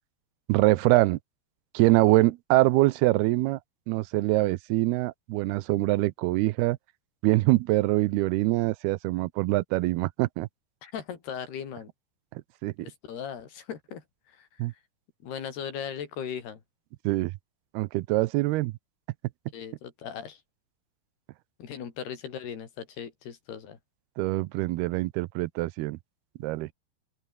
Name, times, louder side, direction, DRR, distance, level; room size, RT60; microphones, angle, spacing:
voice 1, 0.5-1.2 1.7-3.6 3.9-6.8 7.2-10.5 12.6-12.7 14.6-14.7 17.0-17.3 17.7-18.7 24.2-26.0 26.4-26.7, right 19 dB, 90° right, 2.7 m, -24 dB
voice 2, 10.8-11.9 12.8-14.7 15.2-16.6 19.5-20.4 21.6-23.8, left 8 dB, 80° left, 5.3 m, -38 dB
open air
omnidirectional pair, 4.5 m